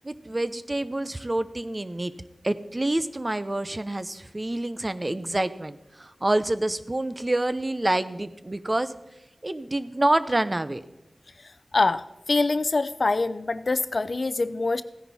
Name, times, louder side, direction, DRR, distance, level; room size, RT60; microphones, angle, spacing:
voice 1, 0.0-2.1 2.4-8.9 9.4-10.8, right 1 dB, 35° right, 13 dB, 0.6 m, -27 dB
voice 2, 11.7-14.8, left 3 dB, 65° left, 14 dB, 0.5 m, -24 dB
16.0 x 10.0 x 4.1 m, 0.94 s
wide cardioid pair, 65°, 0 cm